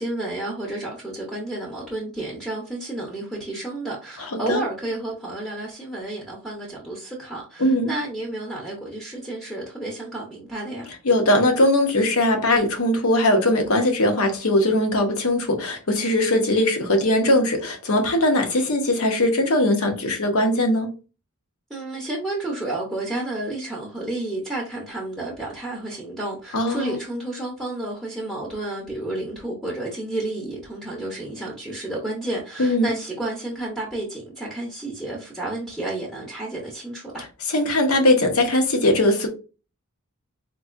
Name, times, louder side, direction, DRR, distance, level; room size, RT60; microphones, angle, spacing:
voice 1, 0.0-10.9 21.7-37.3, right 2 dB, ahead, 0.7 m, -31 dB
voice 2, 4.3-4.6 7.6-7.9 11.0-20.9 26.5-27.0 32.6-32.9 37.5-39.3, left 1 dB, 65° left, 0.9 m, -20 dB
3.8 x 2.7 x 2.5 m
head